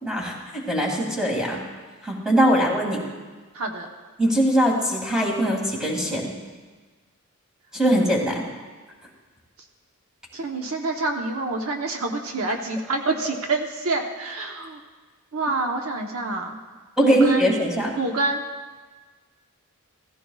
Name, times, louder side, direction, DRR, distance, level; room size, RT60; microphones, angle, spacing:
voice 1, 0.0-1.6 2.0-3.0 4.2-6.3 7.7-8.4 17.0-17.9, right 1 dB, 5° right, -2 dB, 2.2 m, -21 dB
voice 2, 3.5-3.9 10.3-14.8 15.3-16.6 17.0-17.5 18.0-18.4, right 3 dB, 70° right, 2 dB, 1.0 m, -27 dB
16.0 x 15.0 x 2.4 m, 1.4 s
head